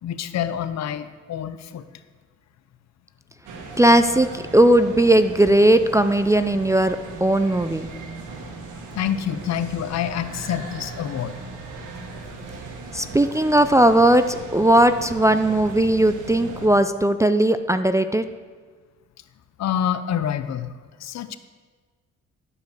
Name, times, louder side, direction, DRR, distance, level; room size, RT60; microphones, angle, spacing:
voice 1, 0.0-1.8 8.9-11.4 19.6-20.7 21.0-21.4, left 9 dB, 60° left, 12 dB, 0.7 m, -27 dB
sound 1, 3.5-16.7, right 3 dB, 90° right, 1.6 m, -38 dB
voice 2, 3.8-7.9 12.9-18.3, right 1 dB, 10° right, 9 dB, 0.4 m, -18 dB
11.5 x 5.2 x 6.5 m, 1.5 s
cardioid pair, 90°, 30 cm